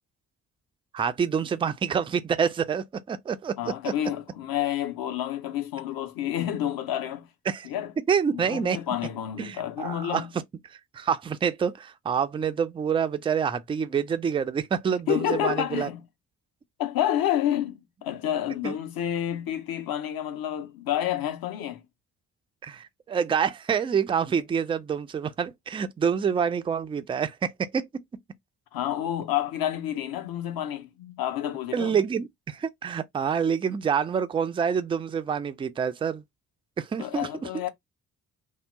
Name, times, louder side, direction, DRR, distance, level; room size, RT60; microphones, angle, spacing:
voice 1, 0.9-3.7 7.5-7.7 8.1-8.8 9.4-10.2 10.9-15.9 18.6-18.8 22.6-27.9 31.7-36.2 36.8-37.7, right 7 dB, 15° right, 0.3 m, -27 dB
voice 2, 3.6-7.3 7.6-7.9 8.3-10.3 15.1-16.0 16.8-21.8 28.7-32.0 37.0-37.7, left 11 dB, 50° left, 0.9 m, -29 dB
2.7 x 2.1 x 3.5 m
figure-of-eight pair, 40°, 45 cm